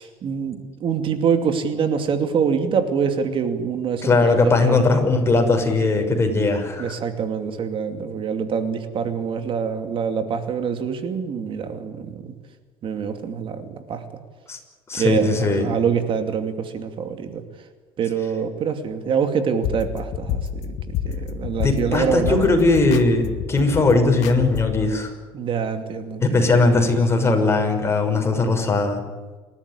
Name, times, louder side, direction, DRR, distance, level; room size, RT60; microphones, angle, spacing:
voice 1, 0.0-4.8 6.8-12.3 12.8-14.0 14.9-17.4 18.0-22.5 25.3-26.2, right 6 dB, 50° right, 8 dB, 2.5 m, -25 dB
voice 2, 4.0-6.9 14.5-14.6 14.9-15.7 21.6-25.1 26.2-29.0, left 3 dB, 20° left, 3 dB, 6.0 m, -19 dB
sound 1, 19.6-24.9, left 8 dB, 70° left, 2.1 m, -29 dB
28.5 x 13.5 x 10.0 m, 1.4 s
supercardioid pair, 100°, 11 cm